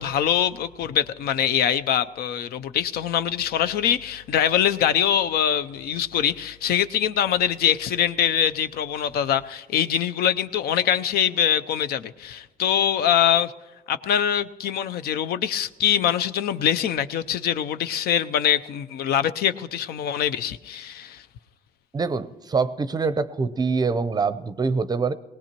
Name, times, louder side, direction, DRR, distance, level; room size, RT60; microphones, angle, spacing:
voice 1, 0.0-13.5 13.9-21.2, left 9 dB, 65° left, 13 dB, 0.6 m, -23 dB
voice 2, 21.9-25.1, right 4 dB, 25° right, 14 dB, 0.6 m, -24 dB
20.0 x 18.5 x 3.0 m, 1.3 s
cardioid pair, 110°, 17 cm